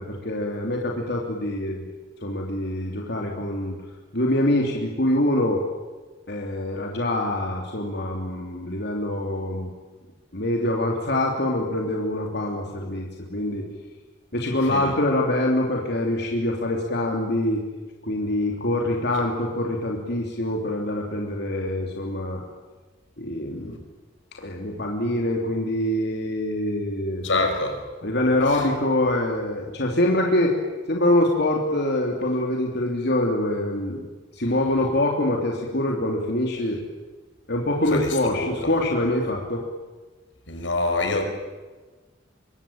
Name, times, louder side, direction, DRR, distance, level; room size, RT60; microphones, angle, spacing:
voice 1, 0.0-1.9 2.2-3.8 4.1-5.6 6.3-9.7 10.3-13.6 14.3-17.6 18.0-22.4 23.2-23.8 24.3-27.5 28.0-30.6 30.9-34.0 34.3-36.8 37.5-39.6, left 1 dB, 60° left, 0 dB, 3.4 m, -25 dB
voice 2, 14.6-15.0 27.2-27.8 28.5-28.6 37.9-38.7 40.5-41.3, left 2 dB, 85° left, 5 dB, 5.6 m, -26 dB
25.5 x 24.5 x 9.0 m, 1.3 s
head